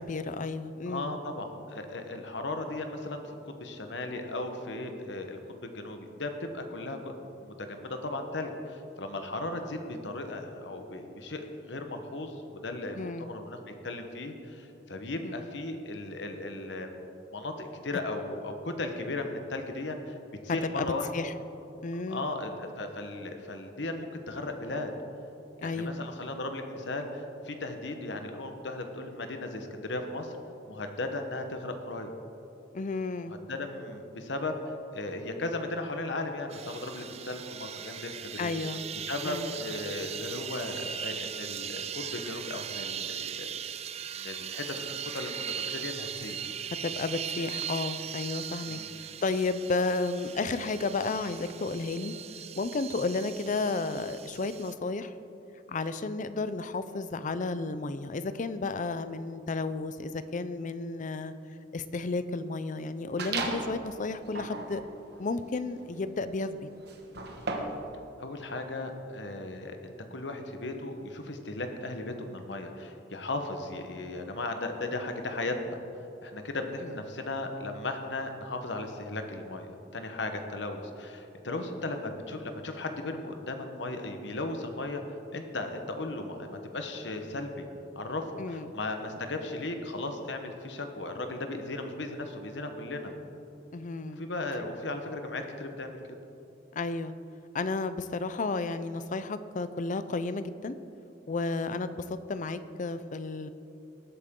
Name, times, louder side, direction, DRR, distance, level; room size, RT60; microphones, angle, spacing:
voice 1, 0.1-1.1 13.0-13.3 15.2-15.4 20.8-20.9 21.1-21.3 21.8-22.3 25.6-26.0 32.7-33.3 38.4-38.8 39.2-39.5 46.8-48.8 49.2-52.1 52.6-55.1 55.7-61.3 61.7-64.8 65.2-66.7 76.8-76.9 88.4-88.7 93.7-94.2 96.7-97.1 97.5-100.8 101.3-103.5, left 3 dB, 45° left, 12 dB, 0.5 m, -32 dB
voice 2, 0.9-17.0 17.3-20.2 20.4-21.2 22.1-24.9 25.6-30.4 30.7-32.1 33.3-34.5 34.9-38.5 38.9-43.5 44.0-46.4 48.7-49.0 68.2-75.8 76.2-85.0 85.3-87.7 87.9-93.1 94.1-96.0, left 2 dB, 70° left, 6 dB, 1.1 m, -36 dB
sound 1, 36.5-54.7, right 9 dB, 35° right, 0.4 m, -39 dB
sound 2, 63.2-63.8 64.3-67.9, right 3 dB, 65° right, 1.2 m, -36 dB
19.5 x 8.7 x 3.7 m, 2.8 s
head